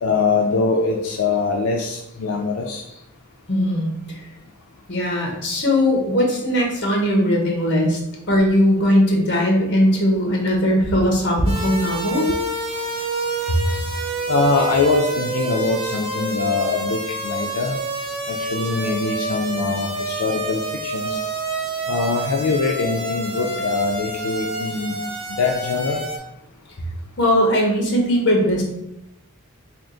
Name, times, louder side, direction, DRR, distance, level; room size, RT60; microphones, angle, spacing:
voice 1, 0.0-2.8 14.3-17.8 18.3-21.2 21.9-25.0 25.3-26.0, left 4 dB, 90° left, 1 dB, 0.4 m, -22 dB
voice 2, 3.5-4.2 4.9-8.0 8.3-12.3 13.5-13.6 27.2-28.6, equal, 55° left, 0 dB, 1.0 m, -19 dB
sound 1, 11.5-26.2, right 2 dB, 25° right, 0.7 m, -28 dB
3.5 x 2.5 x 3.8 m, 0.84 s
head